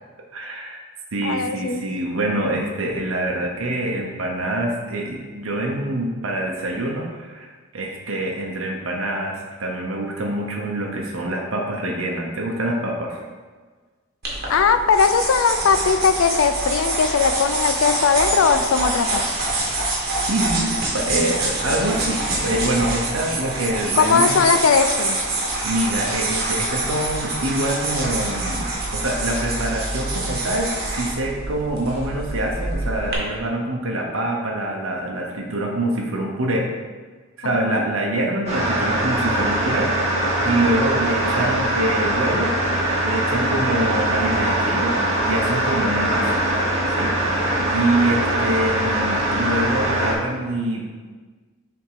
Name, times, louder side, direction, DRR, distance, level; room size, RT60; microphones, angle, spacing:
voice 1, 0.3-0.8 1.1-13.2 19.7-19.9 20.3-24.5 25.6-36.7 37.4-39.9 40.2-42.5 43.0-46.4 46.9-47.1 47.7-50.9, right 1 dB, 75° right, -1 dB, 0.8 m, -25 dB
voice 2, 1.2-1.8 14.5-19.2 24.0-25.2 37.4-37.8, left 5 dB, 70° left, 10 dB, 0.4 m, -19 dB
sound 1, 14.2-33.1, right 2 dB, 50° right, 1.6 m, -25 dB
sound 2, 38.5-50.1, right 1 dB, 35° right, 1.7 m, -22 dB
7.1 x 3.5 x 4.8 m, 1.4 s
head